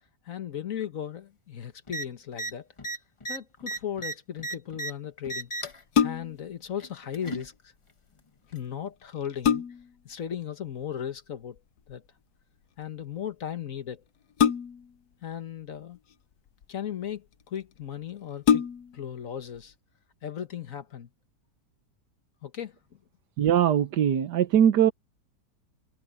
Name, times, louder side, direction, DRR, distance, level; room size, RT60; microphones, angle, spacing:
voice 1, 0.2-2.7 3.3-5.5 6.0-7.7 8.5-9.6 10.0-11.6 11.9-12.0 12.8-14.0 15.2-16.0 16.7-18.7 18.9-19.7 20.2-21.1 22.4-22.8, left 9 dB, 55° left, 1.6 m, -36 dB
sound 1, 1.9-2.0 2.3-2.5 2.8-4.9 5.2-5.8 6.8-7.5 8.5-8.6, right 2 dB, 20° left, 0.9 m, -35 dB
sound 2, 5.7-6.5 8.5-8.6 9.1-10.0 11.6-11.9 14.4-15.0 16.0-16.7 17.4-17.5 17.8-17.9 18.4-19.1 19.6-19.7, left 8 dB, 70° left, 1.3 m, -25 dB
voice 2, 23.4-24.9, right 9 dB, 90° right, 1.6 m, -21 dB
omnidirectional pair, 1.8 m